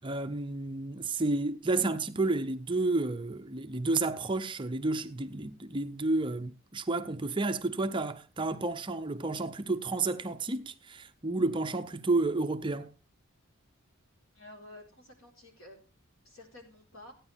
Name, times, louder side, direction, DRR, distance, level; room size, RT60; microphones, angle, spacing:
voice 1, 0.0-12.9, right 2 dB, 20° right, 0.6 m, -31 dB
voice 2, 14.3-15.8 16.2-17.1, left 1 dB, 70° left, 4.3 m, -51 dB
15.5 x 9.7 x 3.5 m
head